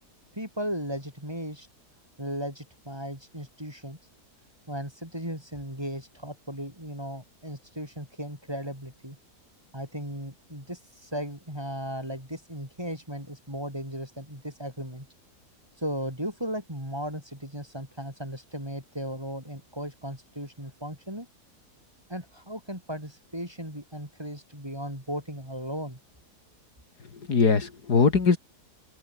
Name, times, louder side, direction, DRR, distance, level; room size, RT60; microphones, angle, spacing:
voice 1, 0.3-1.7 2.2-4.0 4.7-9.2 9.7-15.1 15.8-21.3 22.1-26.0, equal, 15° right, 8.1 m, -36 dB
voice 2, 27.0-28.4, left 5 dB, 80° left, 3.2 m, -22 dB
open air
omnidirectional pair, 1.7 m